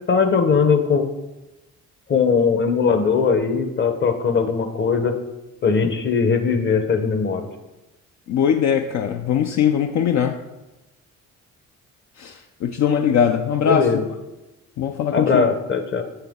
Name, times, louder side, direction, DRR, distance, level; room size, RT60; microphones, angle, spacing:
voice 1, 0.1-1.1 2.1-5.2 5.6-7.5 13.6-14.0 15.1-16.0, left 5 dB, 40° left, 7 dB, 0.9 m, -19 dB
voice 2, 8.3-10.4 12.2-13.9 14.8-15.5, left 8 dB, 65° left, 5 dB, 0.5 m, -20 dB
6.9 x 5.8 x 3.6 m, 1.0 s
cardioid pair, 90°, 30 cm